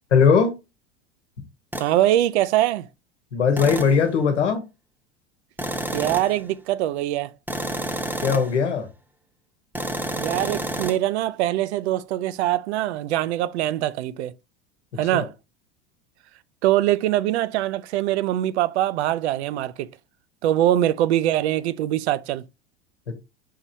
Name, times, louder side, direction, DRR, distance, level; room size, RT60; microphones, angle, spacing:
voice 1, 0.1-0.5 3.3-4.6 8.2-8.9 15.1-15.3, left 6 dB, 85° left, 1.1 m, -19 dB
sound 1, 1.7-1.9 3.6-4.0 5.6-6.4 7.5-8.6 9.7-11.0, right 1 dB, 5° right, 0.8 m, -29 dB
voice 2, 1.8-2.9 5.9-7.3 10.2-14.3 15.0-15.3 16.6-19.9 20.4-22.4, right 13 dB, 70° right, 0.5 m, -23 dB
5.7 x 3.0 x 2.6 m
hypercardioid pair, 85°, 34 cm